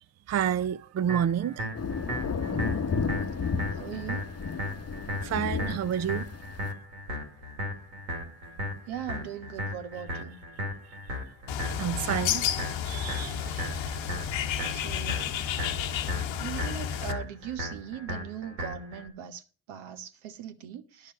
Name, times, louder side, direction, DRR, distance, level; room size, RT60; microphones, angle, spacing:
voice 1, 0.3-1.6 5.2-6.3 11.8-12.4 12.8-13.9, right 9 dB, 35° right, 0.6 m, -29 dB
sound 1, 1.1-19.1, equal, 85° right, 2.3 m, -37 dB
sound 2, 1.7-6.7, left 5 dB, 30° left, 0.9 m, -32 dB
voice 2, 3.7-4.3 8.9-10.4 14.7-15.3 16.4-19.4 19.7-21.1, right 9 dB, 70° right, 1.2 m, -39 dB
Bird, 11.5-17.1, left 9 dB, 65° left, 1.0 m, -31 dB
11.0 x 6.5 x 6.3 m
hypercardioid pair, 40°, 49 cm